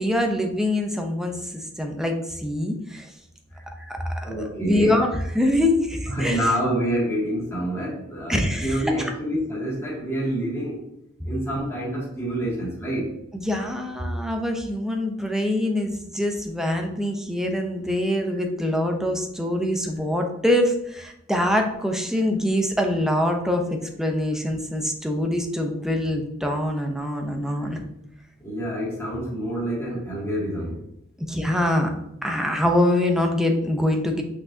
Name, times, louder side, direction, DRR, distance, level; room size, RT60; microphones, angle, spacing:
voice 1, 0.0-3.1 3.9-4.0 4.4-6.4 8.3-8.9 13.3-27.8 31.3-31.9 32.2-34.2, left 1 dB, 5° right, 3 dB, 0.7 m, -24 dB
voice 2, 4.2-5.0 6.1-10.9 11.2-13.1 18.3-18.4 27.5-27.8 28.4-30.8, right 1 dB, 15° left, -7 dB, 2.3 m, -27 dB
6.0 x 5.7 x 2.8 m, 0.79 s
head